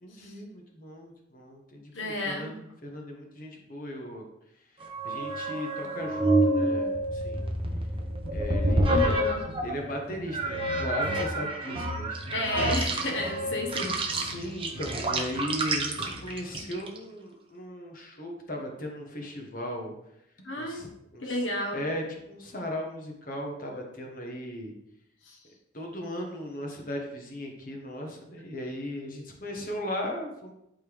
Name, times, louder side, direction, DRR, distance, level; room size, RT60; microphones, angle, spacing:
voice 1, 0.0-4.3 4.5-7.4 8.3-9.1 9.6-12.2 14.1-19.9 20.4-21.4 21.7-24.7 25.7-30.5, left 1 dB, 45° left, 1 dB, 1.4 m, -37 dB
voice 2, 1.9-2.5 8.9-9.4 12.3-14.0 20.4-20.8 21.2-21.8 25.2-25.4, left 1 dB, 70° left, 1 dB, 1.3 m, -31 dB
sound 1, 4.8-9.8 10.3-17.0, right 1 dB, 25° right, 1.0 m, -28 dB
sound 2, 7.3-11.6 12.2-16.5, right 1 dB, 75° right, 2.0 m, -45 dB
11.5 x 4.6 x 3.6 m, 0.80 s
head